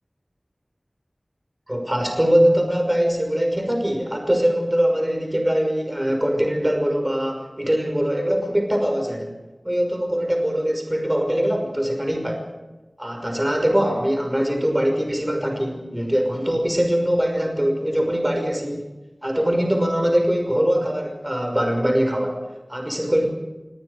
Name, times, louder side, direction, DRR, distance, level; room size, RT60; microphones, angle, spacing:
voice 1, 1.7-9.3 9.6-12.5 13.0-18.9 19.2-22.4 22.7-23.3, equal, 15° right, 3 dB, 5.9 m, -22 dB
26.5 x 23.5 x 5.1 m, 1.1 s
wide cardioid pair, 50°, 0 cm